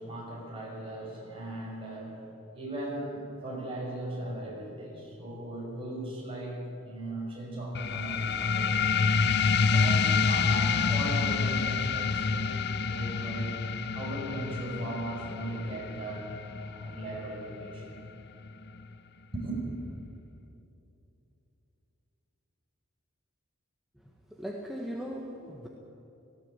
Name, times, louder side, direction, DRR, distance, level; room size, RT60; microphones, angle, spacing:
voice 1, 0.0-8.8 9.6-12.5 12.9-13.5 13.9-16.3 16.6-18.0 19.3-19.6, right 1 dB, 25° right, -3 dB, 6.2 m, -38 dB
sound 1, 7.7-18.8, left 5 dB, 50° left, 0.7 m, -28 dB
voice 2, 24.3-25.7, equal, ahead, -2 dB, 1.4 m, -38 dB
18.0 x 17.0 x 9.0 m, 2.9 s
head